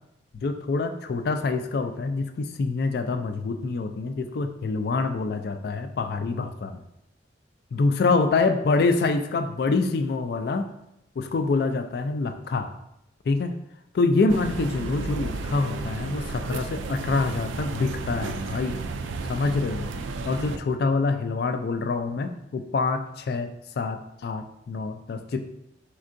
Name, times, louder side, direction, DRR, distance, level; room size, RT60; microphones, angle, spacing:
voice 1, 0.4-6.8 7.7-10.7 11.2-12.7 13.3-13.6 13.9-18.8 19.2-19.9 20.2-25.5, left 3 dB, 55° left, 8 dB, 0.3 m, -26 dB
sound 1, 14.3-20.6, right 3 dB, 85° right, 0.3 m, -33 dB
4.3 x 3.6 x 2.5 m, 0.82 s
head